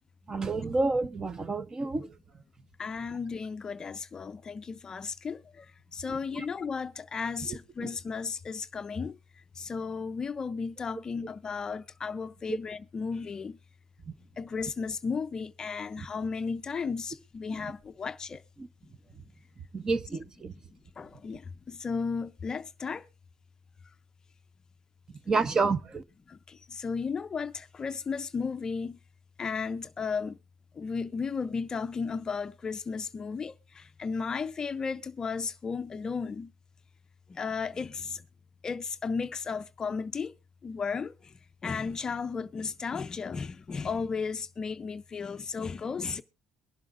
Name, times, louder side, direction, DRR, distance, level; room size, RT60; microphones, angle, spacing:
voice 1, 0.3-2.2 6.1-6.5 7.4-7.9 12.5-12.6 16.0-16.1 17.5-17.7 18.6-18.7 19.7-20.5 25.3-26.0, right 3 dB, 25° right, 0.7 m, -30 dB
voice 2, 2.8-5.7 5.9-9.2 9.6-13.6 14.4-18.4 21.0-23.1 26.3-29.0 29.4-30.4 30.8-36.5 37.3-38.2 38.6-40.3 40.6-41.1 41.6-46.2, left 5 dB, 30° left, 0.4 m, -34 dB
22.5 x 7.6 x 2.4 m
cardioid pair, 105°, 2 cm